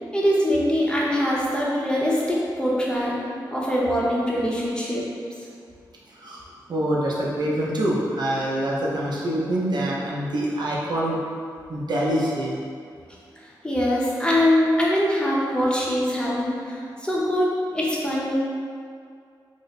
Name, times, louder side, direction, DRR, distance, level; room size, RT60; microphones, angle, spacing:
voice 1, 0.1-3.2 3.5-5.1 13.4-18.3, equal, 10° left, -6 dB, 0.7 m, -23 dB
voice 2, 6.7-11.2 11.7-12.6, right 1 dB, 65° right, -5 dB, 0.6 m, -25 dB
2.9 x 2.0 x 4.1 m, 2.3 s
cardioid pair, 65°, 8 cm